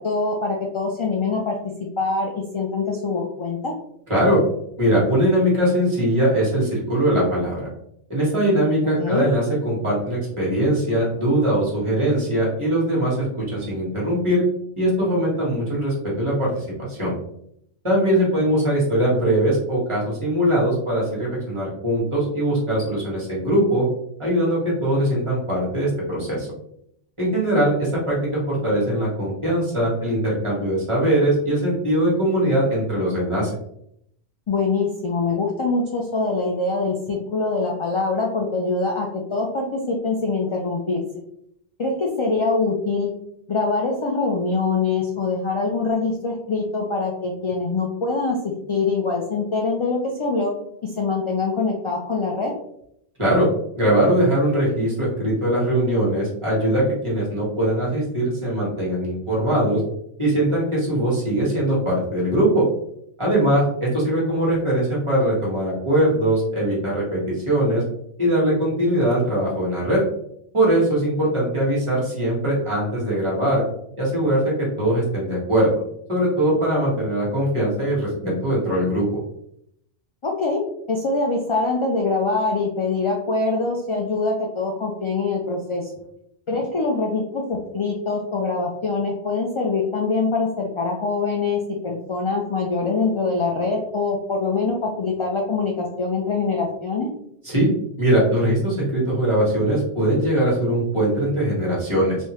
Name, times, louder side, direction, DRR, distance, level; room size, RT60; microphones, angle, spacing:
voice 1, 0.0-3.7 9.0-9.3 34.5-41.0 41.8-43.1 43.5-50.5 50.8-52.5 80.2-80.6 80.9-85.9 86.5-97.1, left 3 dB, 55° left, -1 dB, 0.3 m, -24 dB
voice 2, 4.1-4.4 4.8-7.7 8.1-14.4 14.8-17.1 17.8-23.9 24.2-26.5 27.2-33.5 53.2-53.5 53.7-59.8 60.2-62.6 63.2-67.8 68.2-70.0 70.5-73.6 74.0-75.7 76.1-79.2 97.4-97.7 98.0-102.2, right 1 dB, 25° right, -6 dB, 1.5 m, -21 dB
3.4 x 2.7 x 2.9 m, 0.74 s
omnidirectional pair, 1.1 m